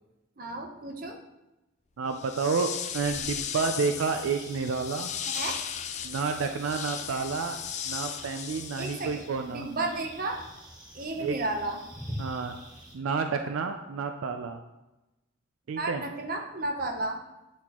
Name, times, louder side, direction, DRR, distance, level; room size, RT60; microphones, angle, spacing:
voice 1, 0.4-1.2 5.3-5.6 8.8-9.2 9.5-10.4 10.9-11.8 15.8-17.2, right 2 dB, 45° right, 3 dB, 0.7 m, -33 dB
voice 2, 2.0-5.1 6.0-7.6 7.8-9.7 11.2-11.4 12.2-12.6 12.9-14.6 15.7-16.0, right 5 dB, 80° right, 6 dB, 0.4 m, -30 dB
sound 1, 2.1-9.4, left 8 dB, 35° left, 0.3 m, -36 dB
sound 2, 3.5-12.9, equal, 20° right, 1.0 m, -46 dB
8.4 x 4.1 x 2.9 m, 0.98 s
head